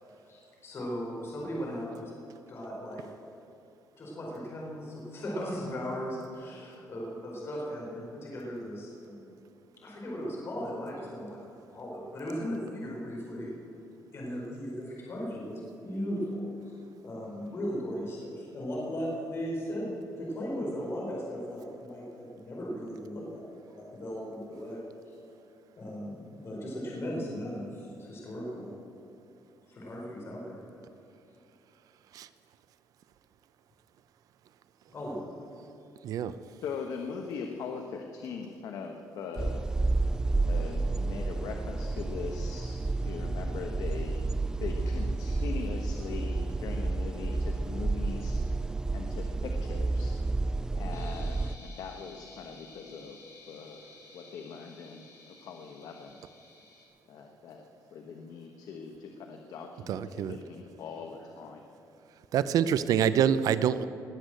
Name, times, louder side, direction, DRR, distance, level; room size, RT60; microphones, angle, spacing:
voice 1, 0.2-2.1 2.5-3.0 4.0-9.3 9.8-11.4 11.7-13.5 14.1-16.8 17.0-25.2 25.8-28.7 29.7-30.6 34.9-35.4, equal, 40° left, -3 dB, 4.6 m, -37 dB
voice 2, 36.6-39.6 40.4-44.2 44.6-48.4 48.9-50.2 50.7-53.2 53.5-53.8 54.1-56.2 57.1-57.6 57.9-61.7, left 5 dB, 75° left, 4 dB, 1.3 m, -41 dB
sound 1, 39.4-51.6, right 3 dB, 10° right, 0.3 m, -30 dB
sound 2, 50.9-56.9, left 3 dB, 60° left, 4.4 m, -54 dB
voice 3, 59.9-60.4 62.3-63.9, right 9 dB, 70° right, 14 dB, 0.6 m, -26 dB
20.0 x 8.4 x 7.8 m, 2.8 s
cardioid pair, 125°, 6 cm